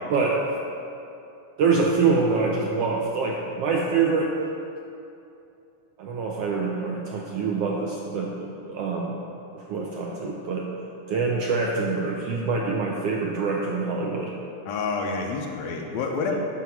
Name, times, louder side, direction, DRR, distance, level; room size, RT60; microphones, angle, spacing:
voice 1, 0.1-0.4 1.6-4.3 6.0-9.2 9.5-10.7 11.1-14.3, right 4 dB, 75° right, -1 dB, 1.4 m, -25 dB
voice 2, 14.7-16.3, left 4 dB, 75° left, 1 dB, 1.9 m, -28 dB
9.3 x 6.6 x 5.8 m, 2.7 s
omnidirectional pair, 3.4 m